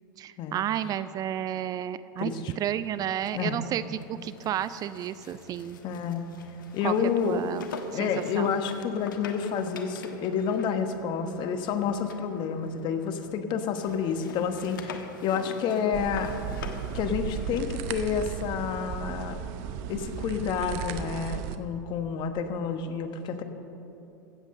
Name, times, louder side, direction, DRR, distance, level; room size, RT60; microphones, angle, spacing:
voice 1, 0.2-5.8 6.8-6.9 7.2-7.7 8.0-8.1 8.4-8.5, right 10 dB, 35° right, 15 dB, 0.4 m, -31 dB
voice 2, 2.2-2.5 3.3-3.6 5.8-6.3 6.7-7.4 7.9-16.3 16.9-19.4 19.9-23.4, left 6 dB, 45° left, 8 dB, 1.3 m, -29 dB
sound 1, 2.8-13.4 13.7-18.1, left 5 dB, 80° left, 1.2 m, -46 dB
sound 2, 15.9-21.6, right 8 dB, 55° right, 0.8 m, -35 dB
15.5 x 8.2 x 6.6 m, 2.9 s
hypercardioid pair, 95°, 11 cm